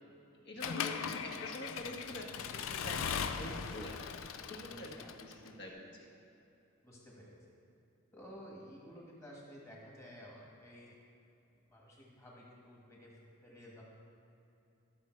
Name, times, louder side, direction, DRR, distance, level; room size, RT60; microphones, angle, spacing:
voice 1, 0.4-1.0 1.4-2.5 2.8-4.1 4.5-5.7 6.0-6.1, left 1 dB, 50° left, -1 dB, 1.5 m, -46 dB
Accelerating revving vroom / Mechanisms, 0.6-5.5, left 7 dB, 70° left, 0.4 m, -39 dB
voice 2, 4.5-5.1 6.8-7.3 8.1-11.0 11.5-13.8, equal, 15° left, -4 dB, 1.7 m, -53 dB
13.0 x 6.7 x 4.5 m, 2.9 s
head